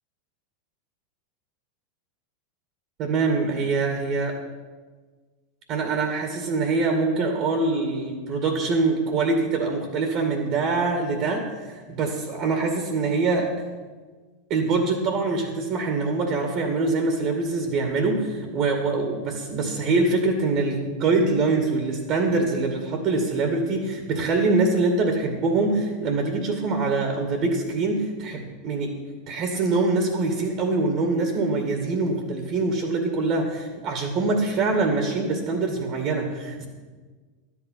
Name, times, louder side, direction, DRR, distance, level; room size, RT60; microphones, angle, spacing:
voice 1, 3.0-4.4 5.7-13.5 14.5-28.9 29.3-36.7, right 3 dB, 50° right, 4 dB, 2.1 m, -24 dB
12.0 x 8.2 x 5.8 m, 1.4 s
hypercardioid pair, 95°, 0 cm